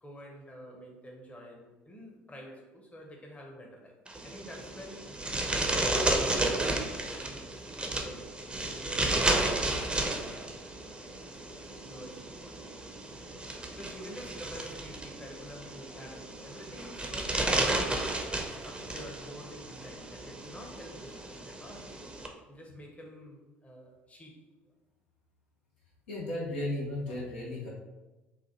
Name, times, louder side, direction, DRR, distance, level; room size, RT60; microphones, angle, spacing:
voice 1, 0.0-3.9 4.2-5.1 5.7-6.5 7.1-11.4 11.9-12.6 13.8-18.2 18.5-21.9 22.5-24.7, equal, 20° left, 0 dB, 0.9 m, -48 dB
sound 1, 4.1-22.3, right 2 dB, 15° right, 0.6 m, -33 dB
voice 2, 26.1-27.7, left 1 dB, 85° left, -5 dB, 1.1 m, -34 dB
3.9 x 2.5 x 2.8 m, 1.1 s
hypercardioid pair, 60°, 6 cm